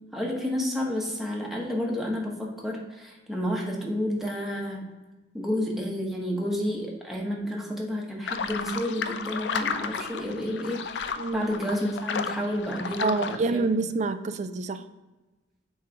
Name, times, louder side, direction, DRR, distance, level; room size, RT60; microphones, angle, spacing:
voice 1, 0.1-4.9 5.3-13.6, equal, ahead, -2 dB, 1.1 m, -30 dB
sound 1, 8.3-13.4, left 5 dB, 75° left, 0.4 m, -33 dB
voice 2, 11.2-11.5 13.0-14.8, right 3 dB, 40° right, 11 dB, 0.4 m, -27 dB
8.3 x 3.2 x 4.7 m, 1.1 s
head